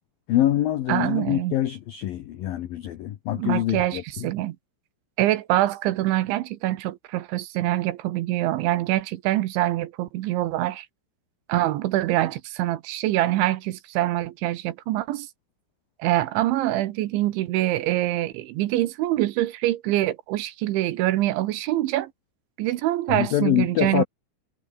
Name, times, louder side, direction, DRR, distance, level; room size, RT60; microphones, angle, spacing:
voice 1, 0.3-4.3 23.1-24.0, left 13 dB, 65° left, 2.4 m, -25 dB
voice 2, 0.9-1.5 3.4-4.6 5.2-10.9 11.5-15.3 16.0-22.1 22.6-24.0, right 15 dB, 75° right, 3.4 m, -25 dB
omnidirectional pair, 5.6 m